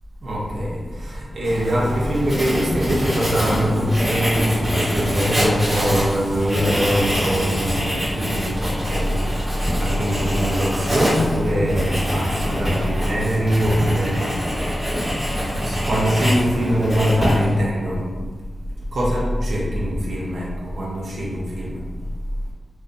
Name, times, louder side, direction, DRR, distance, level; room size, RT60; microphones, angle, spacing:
voice 1, 0.2-14.4 15.1-18.1 18.9-21.8, equal, 65° right, -5 dB, 0.6 m, -22 dB
Writing, 1.4-17.6, equal, 15° right, 1.2 m, -25 dB
2.5 x 2.1 x 2.5 m, 1.4 s
wide cardioid pair, 160°, 0 cm